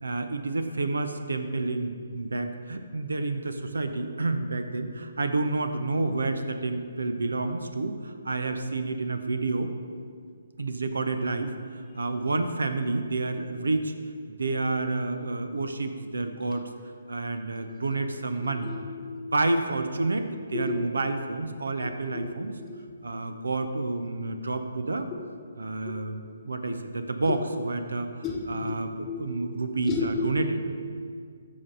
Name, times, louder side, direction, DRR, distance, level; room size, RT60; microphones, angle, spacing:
voice 1, 0.0-9.7 10.6-13.9 14.3-16.7 17.1-18.7 19.1-22.5 23.0-25.1 25.6-28.1 28.5-30.6, right 3 dB, 65° right, 8 dB, 0.8 m, -29 dB
voice 2, 18.6-19.3 20.5-20.8 21.8-22.3 22.6-22.8 25.1-25.2 27.3-27.4 28.2-28.7 29.0-29.6 29.9-30.6, left 4 dB, 15° left, 0 dB, 1.2 m, -33 dB
13.5 x 6.9 x 4.0 m, 2.1 s
figure-of-eight pair, 135°, 0 cm